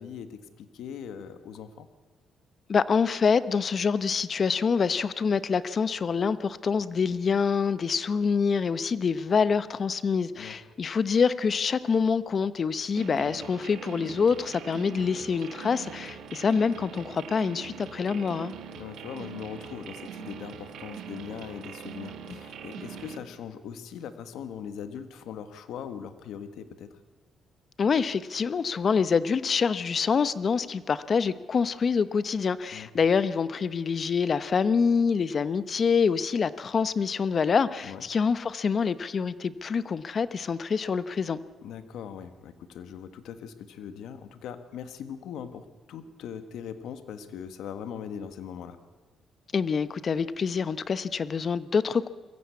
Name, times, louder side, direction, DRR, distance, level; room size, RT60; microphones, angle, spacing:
voice 1, 0.0-1.9 10.4-10.6 18.8-26.9 32.7-32.9 37.8-38.0 41.6-48.8, left 8 dB, 80° left, 10 dB, 1.4 m, -40 dB
voice 2, 2.7-18.5 27.8-41.4 49.5-52.1, left 5 dB, 45° left, 15 dB, 0.9 m, -26 dB
sound 1, 12.9-23.2, right 7 dB, 75° right, 1.7 m, -42 dB
22.5 x 14.5 x 8.4 m, 1.4 s
cardioid pair, 90°, 0 cm